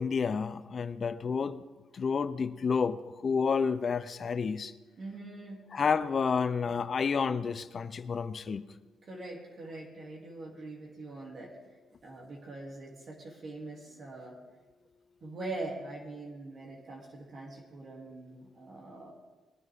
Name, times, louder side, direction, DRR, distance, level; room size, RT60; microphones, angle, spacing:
voice 1, 0.0-1.6 1.9-4.7 5.7-8.6, left 5 dB, 45° left, 0.6 m, -30 dB
voice 2, 5.0-5.6 9.0-11.6 12.0-14.4 15.2-19.1, right 2 dB, 45° right, 2.7 m, -43 dB
20.5 x 9.8 x 3.6 m
cardioid pair, 90°, 0 cm